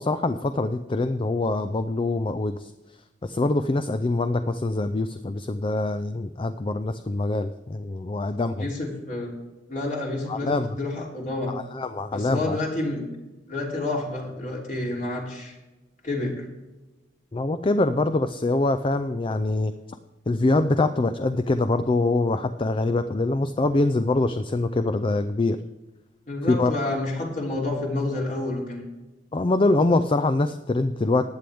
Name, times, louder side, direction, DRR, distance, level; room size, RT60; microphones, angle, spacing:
voice 1, 0.0-2.7 3.2-8.7 10.3-10.7 11.5-12.6 17.3-19.7 20.3-25.6 26.5-26.7 29.3-31.3, left 2 dB, 30° left, 10 dB, 0.4 m, -24 dB
voice 2, 8.6-9.3 9.7-11.6 12.1-13.0 13.5-15.6 16.0-16.5 26.3-28.8, left 2 dB, 45° left, -2 dB, 3.2 m, -29 dB
15.5 x 10.0 x 3.5 m, 1.1 s
head